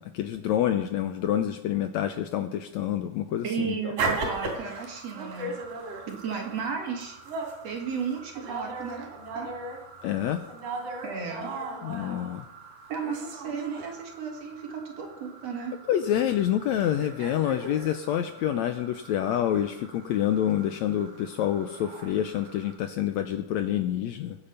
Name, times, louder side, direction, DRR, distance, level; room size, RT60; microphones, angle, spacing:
voice 1, 0.0-3.9 10.0-10.4 11.8-12.4 15.9-24.4, left 11 dB, 75° left, 8 dB, 1.7 m, -27 dB
voice 2, 3.4-5.5 6.1-7.2 7.6-9.5 11.0-11.5 12.9-15.7, right 6 dB, 55° right, 2 dB, 3.1 m, -34 dB
sound 1, 4.0-22.7, right 3 dB, 80° right, 4.5 m, -38 dB
22.0 x 8.8 x 5.7 m, 0.91 s
omnidirectional pair, 3.8 m